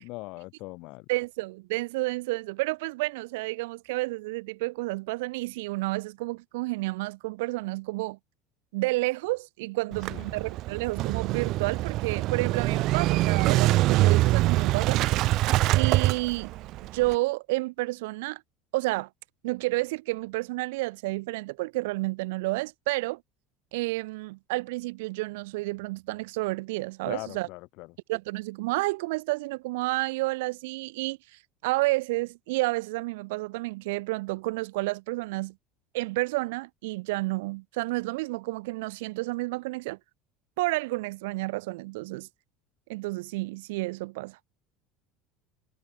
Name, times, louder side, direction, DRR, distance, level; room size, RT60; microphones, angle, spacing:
voice 1, 0.0-1.0 10.1-10.4 27.1-27.9, left 24 dB, 60° left, 1.2 m, -40 dB
voice 2, 1.1-8.2 8.7-15.0 15.7-16.5 16.9-18.4 18.7-19.1 19.4-23.2 23.7-27.5 28.1-31.2 31.6-35.5 35.9-40.0 40.6-42.3 42.9-44.5, right 22 dB, 85° right, 1.1 m, -30 dB
Motorcycle / Engine starting, 9.9-17.1, right 17 dB, 50° right, 0.6 m, -24 dB
supercardioid pair, 140°, 0 cm